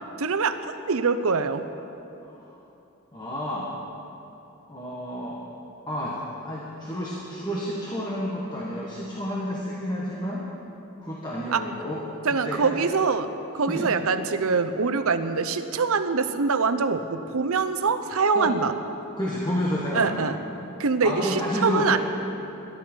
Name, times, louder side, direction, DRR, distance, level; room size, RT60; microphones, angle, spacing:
voice 1, 0.2-1.6 11.5-11.6 12.2-18.7 19.9-20.4 20.8-22.0, right 4 dB, 70° right, 10 dB, 0.7 m, -24 dB
voice 2, 3.1-3.7 4.7-5.4 5.9-6.2 6.4-10.4 11.0-12.8 13.7-13.9 18.3-18.5 19.2-20.2 21.0-22.0, equal, 20° left, -5 dB, 1.5 m, -30 dB
22.0 x 12.0 x 4.5 m, 2.9 s
head